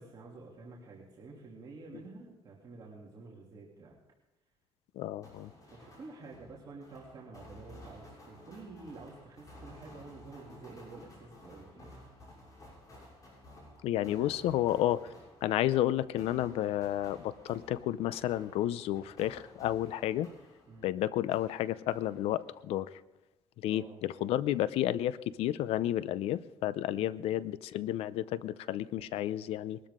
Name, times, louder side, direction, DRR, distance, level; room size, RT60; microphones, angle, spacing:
voice 1, 0.0-4.0 5.6-12.0 14.1-14.3 20.7-20.9 23.7-24.0 26.9-27.1, right 3 dB, 45° right, -4 dB, 2.9 m, -49 dB
voice 2, 5.0-5.5 13.8-15.0 15.4-20.3 20.8-22.9 23.6-29.8, left 13 dB, 85° left, 17 dB, 0.6 m, -31 dB
sound 1, 5.2-21.0 21.3-22.7, left 1 dB, 35° left, 6.8 m, -54 dB
21.5 x 12.5 x 3.7 m, 0.99 s
cardioid pair, 115°, 10 cm